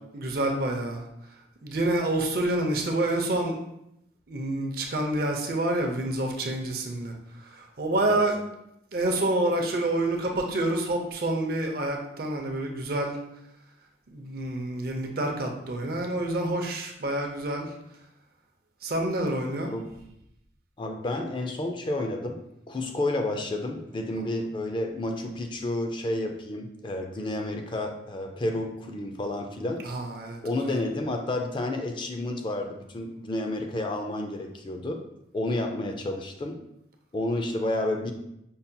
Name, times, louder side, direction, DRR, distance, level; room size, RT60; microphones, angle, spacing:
voice 1, 0.1-1.0 1.6-3.6 4.3-7.1 7.4-8.4 8.9-13.2 14.1-17.7 18.8-19.7 29.8-30.8, right 1 dB, 55° right, 2 dB, 0.6 m, -28 dB
voice 2, 20.8-22.4 22.7-29.8 30.4-35.0 35.3-36.6 37.1-38.1, left 1 dB, 30° left, 4 dB, 0.3 m, -30 dB
5.4 x 2.7 x 2.2 m, 0.81 s
head